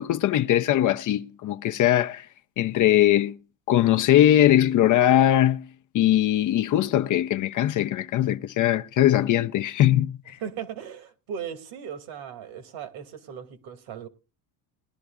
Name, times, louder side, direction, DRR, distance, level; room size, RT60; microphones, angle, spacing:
voice 1, 0.0-2.3 2.6-3.4 3.7-5.7 5.9-10.4, left 12 dB, 40° left, 0.5 m, -21 dB
voice 2, 10.3-14.1, right 8 dB, 70° right, 2.2 m, -37 dB
21.0 x 11.0 x 2.4 m
supercardioid pair, 110°, 49 cm